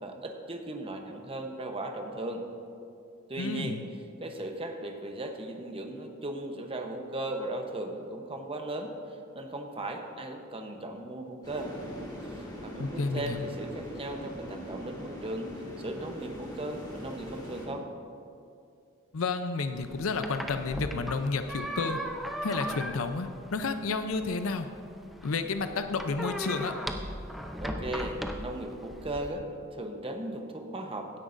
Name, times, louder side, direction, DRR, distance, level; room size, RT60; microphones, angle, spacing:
voice 1, 0.0-2.4 3.3-3.8 4.2-8.9 9.3-11.7 12.2-15.5 15.8-17.9 27.6-29.5 29.8-31.1, right 1 dB, 25° right, 4 dB, 0.9 m, -37 dB
voice 2, 3.4-3.8 12.8-13.4 19.1-22.0 22.4-24.7 25.2-26.7, left 4 dB, 80° left, 8 dB, 0.6 m, -31 dB
sound 1, 11.4-17.7, equal, 20° left, 2.2 m, -41 dB
sound 2, 19.8-29.3, equal, ahead, 0.5 m, -38 dB
16.0 x 10.0 x 2.6 m, 2.5 s
head